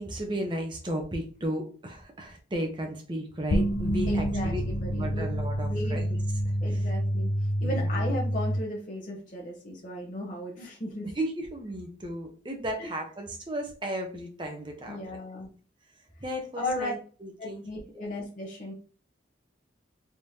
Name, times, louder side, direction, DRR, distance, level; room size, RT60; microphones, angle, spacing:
voice 1, 0.0-4.6 4.9-6.2 6.4-6.8 7.6-7.9 11.2-15.0 16.2-17.6, right 1 dB, 25° right, 2 dB, 0.7 m, -34 dB
sound 1, 3.5-8.6, equal, 65° left, 0.4 m, -28 dB
voice 2, 4.1-5.2 5.7-6.0 6.6-7.3 7.6-11.1 12.8-12.9 14.9-15.5 16.6-16.9 17.4-18.7, left 1 dB, 45° left, -3 dB, 0.9 m, -35 dB
3.5 x 3.2 x 2.7 m, 0.40 s
head